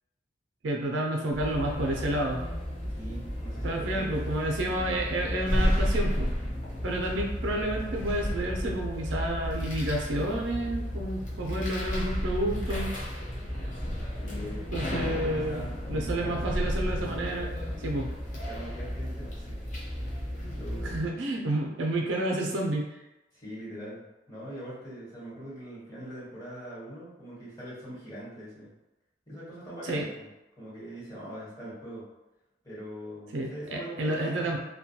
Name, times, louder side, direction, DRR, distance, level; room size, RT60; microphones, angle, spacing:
voice 1, 0.6-2.4 3.6-6.3 6.8-12.9 14.7-17.6 17.8-18.1 20.8-22.8 29.8-30.0 33.3-34.6, right 1 dB, 75° right, 0 dB, 0.4 m, -30 dB
sound 1, 1.3-21.0, equal, 45° left, 0.7 m, -32 dB
voice 2, 2.9-4.1 7.1-7.2 14.2-16.6 18.3-19.8 20.5-21.1 23.3-28.7 29.3-30.3 30.6-32.0 32.6-34.5, equal, 20° left, -9 dB, 1.2 m, -42 dB
2.2 x 2.2 x 2.7 m, 0.98 s
head